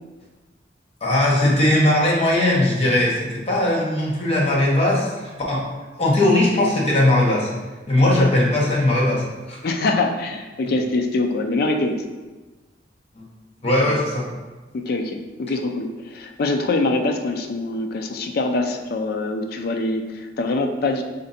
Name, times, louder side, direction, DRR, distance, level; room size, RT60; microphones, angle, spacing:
voice 1, 1.0-5.6 6.0-7.5 7.9-9.6 13.2-13.3 13.6-14.3, left 1 dB, 35° left, -5 dB, 1.0 m, -19 dB
voice 2, 9.6-12.0 13.9-14.0 14.7-21.0, left 2 dB, 55° left, 4 dB, 0.4 m, -24 dB
4.2 x 2.6 x 4.0 m, 1.2 s
head